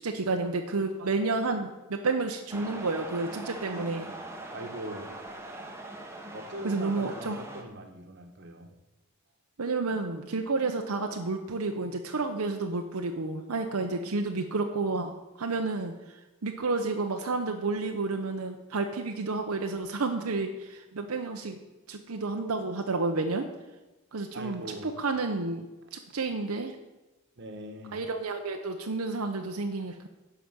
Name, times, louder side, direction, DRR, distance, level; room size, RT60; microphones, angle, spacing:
voice 1, 0.0-4.1 6.6-7.4 9.6-21.6 21.9-23.5 24.1-26.8 27.9-30.1, right 3 dB, 80° right, 4 dB, 0.8 m, -31 dB
sound 1, 2.5-7.6, right 1 dB, 10° right, 1.1 m, -42 dB
voice 2, 4.5-5.1 6.3-8.7 24.3-25.0 27.4-28.0, right 1 dB, 50° right, 6 dB, 1.3 m, -41 dB
11.5 x 5.0 x 7.3 m, 1.1 s
head